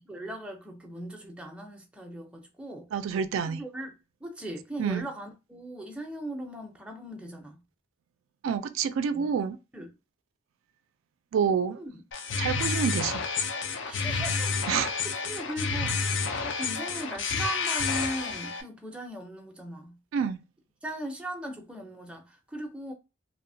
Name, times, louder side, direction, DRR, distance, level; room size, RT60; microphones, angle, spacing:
voice 1, 0.0-2.9 3.5-7.6 9.1-9.3 9.7-9.9 11.7-11.9 13.8-20.0 20.8-22.9, right 1 dB, 5° right, 0.5 m, -39 dB
voice 2, 2.9-3.6 4.8-5.1 8.4-9.6 11.3-11.8 12.4-13.2 14.7-14.9 20.1-20.4, right 7 dB, 85° right, 0.3 m, -28 dB
sound 1, 12.1-18.6, left 5 dB, 60° left, 0.4 m, -30 dB
2.9 x 2.0 x 2.6 m
head